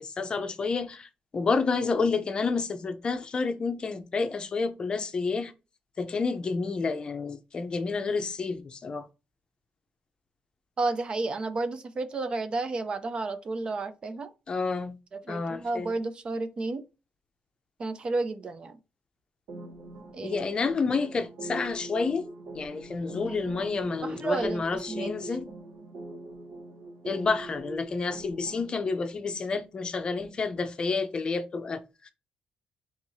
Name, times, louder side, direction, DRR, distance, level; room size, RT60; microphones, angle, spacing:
voice 1, 0.0-5.5 6.0-9.1 14.5-15.0 15.3-15.9 20.2-22.2 22.5-25.5 27.0-32.1, left 4 dB, 30° left, 0.6 m, -29 dB
voice 2, 10.8-14.3 15.1-16.8 17.8-18.8 20.1-20.4 23.3-23.4 24.0-25.1, right 3 dB, 30° right, 0.5 m, -32 dB
sound 1, 19.5-28.8, right 2 dB, 90° right, 1.7 m, -42 dB
4.6 x 3.6 x 2.7 m
cardioid pair, 150°, 3 cm